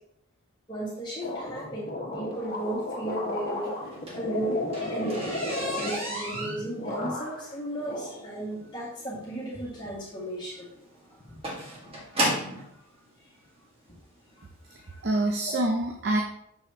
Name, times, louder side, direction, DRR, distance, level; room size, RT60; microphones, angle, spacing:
voice 1, 0.7-3.8 4.1-5.3 5.8-10.7 11.2-12.0 14.8-15.0, right 1 dB, 20° left, -6 dB, 1.8 m, -35 dB
sound 1, 1.2-6.5 6.8-7.5 7.9-8.7, left 1 dB, 45° left, 1.4 m, -34 dB
sound 2, 3.8-12.7 13.6-13.7 14.2-14.4 14.7-14.8 15.2-15.3, right 1 dB, 25° right, 1.6 m, -33 dB
voice 2, 14.7-16.2, right 1 dB, 50° right, 3 dB, 0.6 m, -27 dB
7.0 x 6.3 x 2.8 m, 0.74 s
head